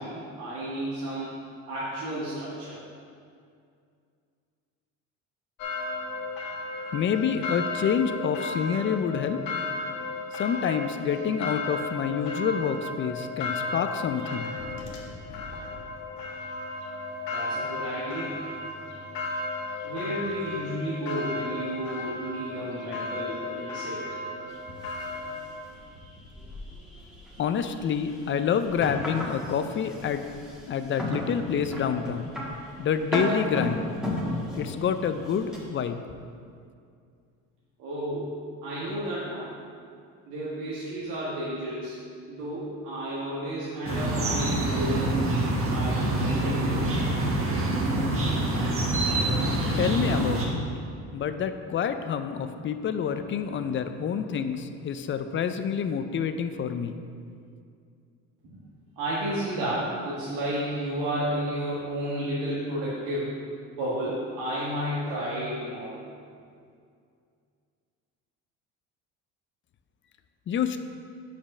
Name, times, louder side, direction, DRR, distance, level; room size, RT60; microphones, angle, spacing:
voice 1, 0.0-1.4 1.7-2.8 17.3-18.4 19.8-24.0 37.8-38.3 38.6-39.5 40.3-42.0 42.3-45.3 45.7-47.2 58.4-58.6 59.0-63.3 63.7-66.0, right 1 dB, 80° right, -8 dB, 1.5 m, -32 dB
sound 1, 5.6-25.4, left 3 dB, 75° left, 1.4 m, -34 dB
voice 2, 6.9-9.4 10.4-14.5 27.4-30.2 30.7-32.3 32.8-33.9 34.5-36.0 49.8-50.6 51.1-56.9 70.5-70.8, left 7 dB, 35° left, 9 dB, 0.5 m, -27 dB
sound 2, 24.5-35.7, left 1 dB, ahead, 1.5 m, -35 dB
sound 3, 43.8-50.4, right 1 dB, 40° right, 1.3 m, -26 dB
5.3 x 5.1 x 6.0 m, 2.3 s
supercardioid pair, 95°, 34 cm